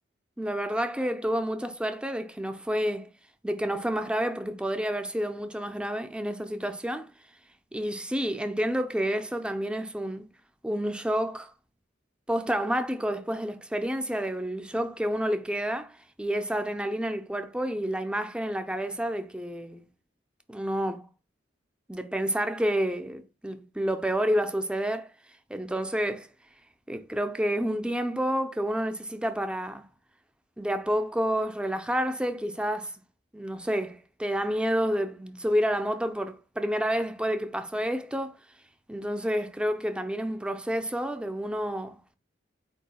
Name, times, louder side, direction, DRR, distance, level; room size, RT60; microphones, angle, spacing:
voice 1, 0.4-3.1 3.4-7.1 7.7-10.3 10.6-11.5 12.3-19.8 20.5-21.0 21.9-25.1 25.5-26.3 26.9-29.9 30.6-32.9 33.3-38.4 38.9-42.0, equal, 5° right, 0.4 m, -29 dB
4.5 x 2.7 x 4.2 m
head